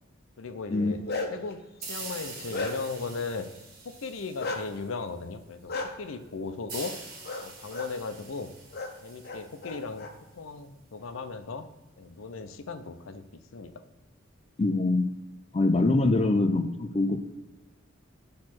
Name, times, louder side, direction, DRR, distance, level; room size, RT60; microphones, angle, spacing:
voice 1, 0.4-1.0 1.3-3.5 3.8-5.7 6.0-7.0 7.4-8.5 9.0-10.1 10.4-11.6 12.0-13.7 16.0-16.2, left 4 dB, 90° left, 9 dB, 0.6 m, -37 dB
Bark, 0.7-1.5 2.0-3.0 4.4-4.6 5.7-5.9 7.2-7.4 7.7-7.9 8.7-8.9 9.2-10.1, left 3 dB, 50° left, 0.7 m, -34 dB
sound 1, 1.8-5.2 6.7-10.2, right 3 dB, 50° right, 1.4 m, -44 dB
voice 2, 14.6-15.0 15.5-17.2, left 2 dB, 30° left, 8 dB, 0.4 m, -24 dB
6.4 x 3.2 x 5.9 m, 1.0 s
head